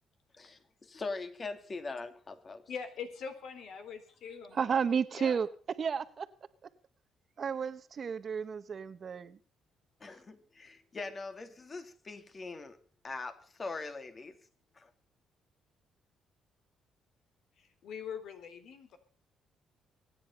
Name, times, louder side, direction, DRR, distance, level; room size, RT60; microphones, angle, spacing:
voice 1, 0.3-2.6 10.0-12.8 13.0-14.4 14.7-14.9, left 3 dB, 35° left, 2.7 m, -42 dB
voice 2, 2.7-4.7 5.1-5.4 17.6-19.0, left 6 dB, 75° left, 3.6 m, -43 dB
voice 3, 4.5-5.5 5.8-6.3 7.4-9.4, right 6 dB, 50° right, 1.2 m, -32 dB
23.5 x 10.0 x 5.6 m
cardioid pair, 90°, 0 cm